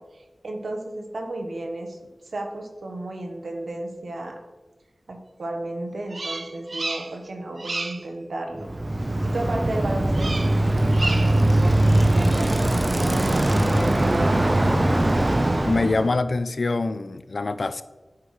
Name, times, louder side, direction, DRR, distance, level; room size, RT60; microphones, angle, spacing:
voice 1, 0.1-2.0 2.3-4.4 5.1-14.3, right 2 dB, 90° right, 2 dB, 1.2 m, -33 dB
Bird vocalization bird call bird song, 6.1-7.3 7.6-8.1 10.1-10.6 10.9-11.5, right 3 dB, 65° right, 0.4 m, -31 dB
Bicycle, 8.6-16.1, right 1 dB, 40° right, 0.8 m, -21 dB
voice 2, 15.6-17.8, left 3 dB, 70° left, 12 dB, 0.4 m, -24 dB
9.7 x 6.2 x 3.2 m, 1.3 s
cardioid pair, 45°, 0 cm